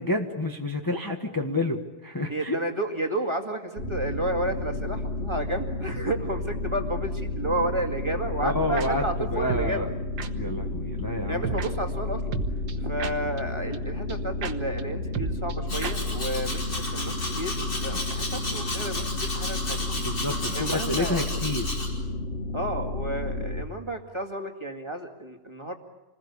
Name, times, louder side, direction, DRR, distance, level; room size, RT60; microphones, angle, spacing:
voice 1, 0.0-2.6 8.4-9.0 9.3-9.9 10.3-11.6 20.0-21.7, left 2 dB, 10° left, 2 dB, 1.4 m, -29 dB
voice 2, 2.3-9.9 11.3-12.2 12.8-19.9 20.5-21.2 22.5-25.7, right 1 dB, 15° right, 3 dB, 2.2 m, -31 dB
sound 1, 3.8-23.6, left 2 dB, 40° left, 2.0 m, -32 dB
sound 2, 8.8-8.9 9.5-9.7 10.2-10.3 11.4-11.7 12.3-13.4 13.7-13.8 14.1-14.2 14.4-14.5 14.8-14.9 15.1-15.6 15.8-16.0 16.2-16.3 16.5-16.6, right 6 dB, 70° right, 1.8 m, -31 dB
Domestic sounds home sounds, 15.7-21.9, left 1 dB, 75° left, 6.1 m, -33 dB
28.0 x 20.5 x 8.4 m, 1.1 s
omnidirectional pair, 1.9 m